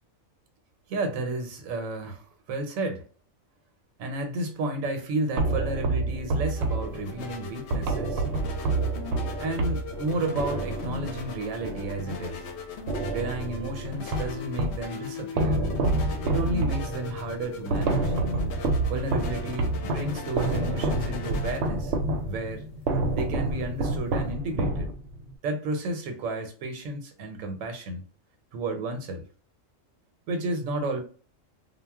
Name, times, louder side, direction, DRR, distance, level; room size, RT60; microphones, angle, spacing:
voice 1, 0.9-3.0 4.0-8.2 9.4-12.5 13.1-15.6 16.2-18.1 18.9-21.9 22.3-22.7 23.1-24.9 25.4-28.0 28.5-29.2 30.3-31.0, right 2 dB, 85° right, 1.0 m, -32 dB
sound 1, 5.4-12.5 12.9-14.9 15.4-25.3, right 2 dB, 65° right, 0.7 m, -28 dB
sound 2, 6.1-24.3, left 6 dB, 65° left, 0.8 m, -39 dB
2.3 x 2.0 x 3.3 m
omnidirectional pair, 1.4 m